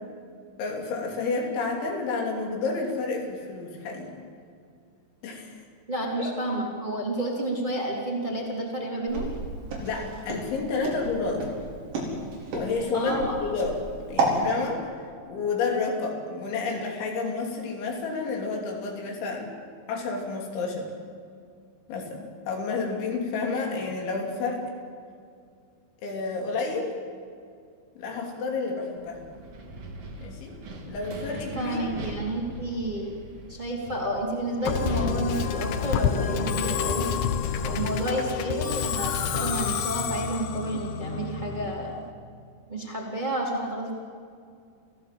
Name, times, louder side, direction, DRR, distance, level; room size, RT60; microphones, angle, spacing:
voice 1, 0.6-4.1 5.2-5.6 6.1-6.3 9.8-11.5 12.5-14.8 15.3-19.5 19.9-20.9 21.9-24.6 26.0-26.9 28.0-29.2 30.2-30.6 30.9-31.8, left 4 dB, 85° left, 1 dB, 5.4 m, -30 dB
voice 2, 5.9-9.3 12.9-13.4 31.5-33.1 33.5-37.1 37.6-42.0 42.7-43.9, right 1 dB, 10° right, -3 dB, 3.1 m, -30 dB
Walk footsteps, 9.1-14.4, right 3 dB, 85° right, 7.2 m, -30 dB
Wind, 29.0-35.8, right 2 dB, 40° right, 2.7 m, -41 dB
Musical instrument, 34.7-42.0, left 7 dB, 70° left, 2.6 m, -28 dB
28.5 x 16.0 x 7.8 m, 2.3 s
omnidirectional pair, 5.2 m